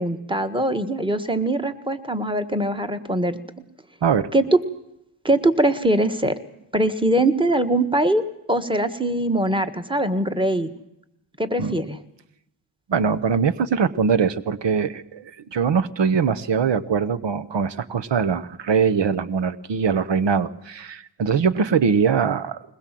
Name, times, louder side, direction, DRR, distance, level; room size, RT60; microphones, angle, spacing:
voice 1, 0.0-3.4 4.3-4.4 5.2-6.4 6.7-10.7 11.4-12.0, right 1 dB, 10° right, 8 dB, 1.6 m, -22 dB
voice 2, 12.9-22.6, right 6 dB, 90° right, 14 dB, 0.9 m, -22 dB
21.5 x 21.0 x 7.6 m, 0.84 s
wide cardioid pair, 80°, 42 cm